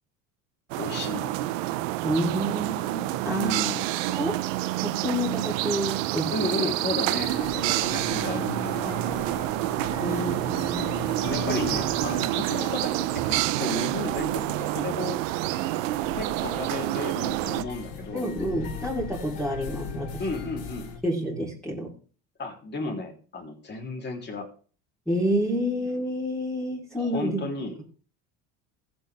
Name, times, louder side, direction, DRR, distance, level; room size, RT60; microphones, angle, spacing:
sound 1, 0.7-17.6, right 16 dB, 90° right, 0.8 m, -28 dB
voice 1, 0.8-1.3 3.2-3.9 6.3-9.5 11.3-15.2 16.1-18.3 20.2-20.9 22.4-24.5 26.9-27.8, left 2 dB, 30° left, 2 dB, 3.5 m, -33 dB
voice 2, 2.0-3.6 4.1-4.4 4.8-6.7 10.0-11.0 18.1-20.2 21.0-21.9 25.1-27.4, equal, ahead, -6 dB, 3.8 m, -29 dB
sound 2, 7.1-21.0, left 4 dB, 65° left, 3.3 m, -39 dB
15.0 x 8.7 x 3.6 m, 0.40 s
supercardioid pair, 110°, 37 cm